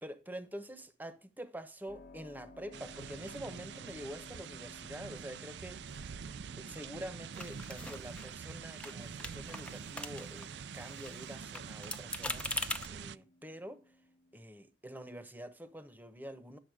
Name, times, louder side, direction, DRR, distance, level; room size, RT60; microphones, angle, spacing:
voice 1, 0.0-6.2 6.6-12.5 12.9-13.8 14.3-16.6, equal, 10° right, 1.0 m, -46 dB
Keyboard (musical), 1.9-14.4, left 1 dB, 55° left, 0.9 m, -58 dB
sound 1, 2.7-13.2, right 6 dB, 70° right, 0.4 m, -46 dB
sound 2, 7.3-8.5 8.8-8.9 9.2-10.5 10.8-12.9, left 2 dB, 5° left, 0.6 m, -41 dB
11.0 x 7.2 x 4.9 m
head